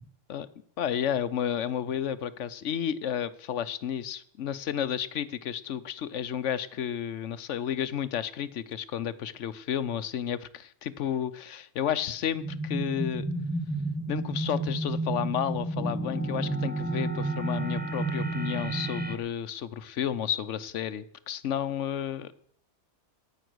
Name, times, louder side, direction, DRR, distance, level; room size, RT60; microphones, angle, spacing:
voice 1, 0.8-13.3 14.1-22.3, left 9 dB, 80° left, 15 dB, 1.1 m, -32 dB
sound 1, 12.4-19.2, right 2 dB, 10° right, 0.9 m, -31 dB
14.0 x 9.4 x 6.2 m, 0.68 s
omnidirectional pair, 1.2 m